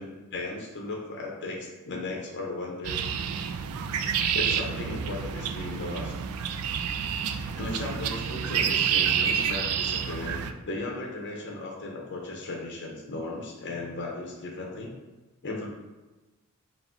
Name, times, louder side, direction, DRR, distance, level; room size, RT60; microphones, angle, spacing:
voice 1, 0.0-3.0 4.1-6.1 7.6-14.9 15.4-15.7, left 2 dB, 55° left, -2 dB, 0.7 m, -36 dB
sound 1, 2.8-10.5, right 8 dB, 80° right, 0.3 m, -29 dB
4.9 x 2.1 x 3.7 m, 1.2 s
head